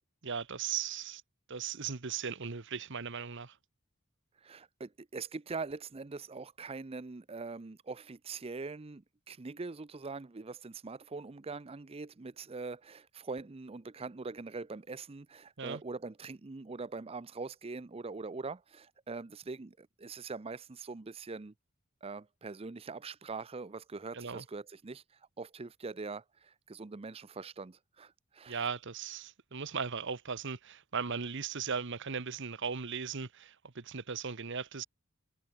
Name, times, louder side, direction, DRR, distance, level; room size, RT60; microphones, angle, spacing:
voice 1, 0.2-1.2 1.5-3.6 15.6-15.8 24.1-24.4 28.5-34.8, right 6 dB, 60° right, 1.2 m, -37 dB
voice 2, 4.3-21.5 22.0-28.7, right 4 dB, 25° right, 0.5 m, -43 dB
head